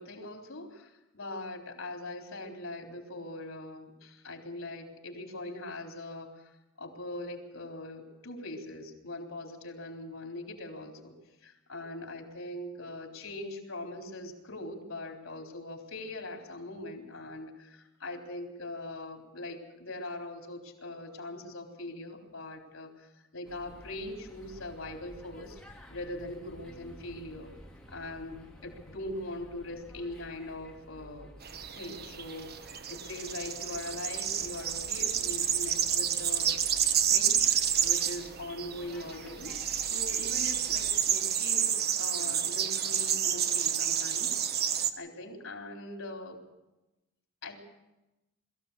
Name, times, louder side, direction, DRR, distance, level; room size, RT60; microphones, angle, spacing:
voice 1, 0.0-6.5 6.8-11.1 11.4-25.6 25.9-27.5 27.9-31.3 31.7-36.6 37.1-44.3 44.8-46.4 47.4-47.6, left 2 dB, 90° left, 2 dB, 4.0 m, -41 dB
sound 1, 23.4-41.1, equal, 5° left, 2.9 m, -52 dB
sound 2, 31.4-44.9, right 9 dB, 50° right, 1.2 m, -29 dB
22.0 x 15.0 x 8.3 m, 1.0 s
head